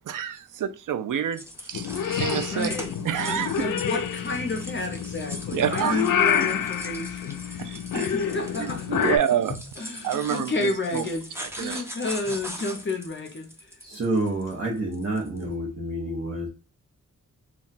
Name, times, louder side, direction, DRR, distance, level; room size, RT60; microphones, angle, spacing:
voice 1, 0.1-2.7 3.0-3.6 5.5-6.0 7.6-8.1 8.6-9.6 10.0-11.1 11.4-11.8, right 9 dB, 75° right, 0.5 m, -28 dB
sound 1, 1.3-15.4, equal, 10° right, 0.6 m, -41 dB
Purr / Meow, 1.7-9.2, left 9 dB, 85° left, 0.5 m, -28 dB
voice 2, 2.5-2.9 3.2-9.1 9.8-11.3 11.5-13.7, left 2 dB, 40° left, 0.6 m, -31 dB
voice 3, 13.8-16.5, right 1 dB, 45° right, 0.8 m, -28 dB
2.3 x 2.2 x 3.9 m
wide cardioid pair, 100°, 32 cm